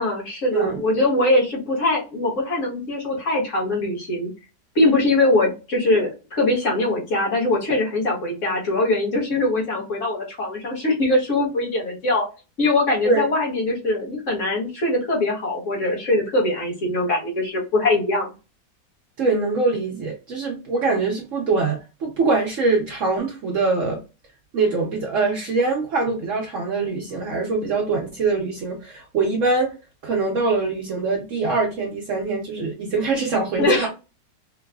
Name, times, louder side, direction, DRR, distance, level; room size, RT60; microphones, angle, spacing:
voice 1, 0.0-4.3 4.7-12.3 12.6-18.3 33.6-33.9, left 2 dB, 50° left, -2 dB, 1.6 m, -22 dB
voice 2, 19.2-24.0 24.5-29.7 30.0-33.9, right 3 dB, 60° right, 0 dB, 0.9 m, -23 dB
4.6 x 2.2 x 2.3 m, 0.30 s
omnidirectional pair, 1.8 m